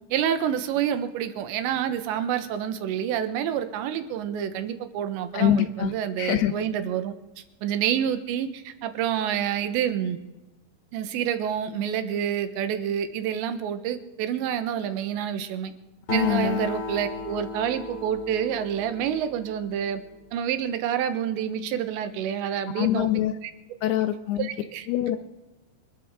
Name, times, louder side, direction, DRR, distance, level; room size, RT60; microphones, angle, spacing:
voice 1, 0.1-7.1 7.6-10.2 10.9-15.7 16.1-20.0 20.3-23.1 23.8-23.9 24.4-24.9, right 9 dB, 85° right, 9 dB, 3.3 m, -28 dB
voice 2, 5.3-6.6 16.2-16.6 22.8-23.3 23.8-24.5 24.9-25.2, left 12 dB, 80° left, 9 dB, 2.5 m, -24 dB
Acoustic guitar, 16.1-19.9, left 2 dB, 40° left, 2.0 m, -33 dB
26.5 x 13.0 x 3.7 m, 1.1 s
omnidirectional pair, 5.1 m